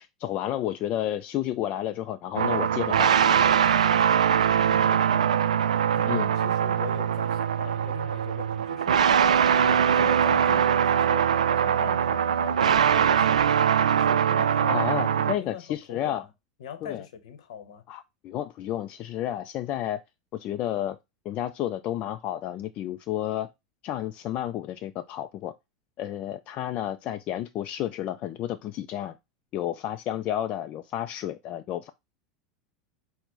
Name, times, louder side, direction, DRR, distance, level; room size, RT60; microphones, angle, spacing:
voice 1, 0.0-3.4 6.1-6.4 14.7-16.2 16.8-17.0 17.9-20.0 20.3-21.0 21.3-23.5 23.8-25.5 26.0-29.1 29.5-31.9, left 12 dB, 40° left, 0.3 m, -31 dB
sound 1, 2.4-15.3, right 8 dB, 75° right, 0.3 m, -22 dB
voice 2, 4.6-5.5 5.9-9.0 9.6-13.6 13.9-16.3 16.6-17.8, left 8 dB, 65° left, 0.9 m, -41 dB
5.9 x 2.1 x 3.8 m
figure-of-eight pair, 85°, 4 cm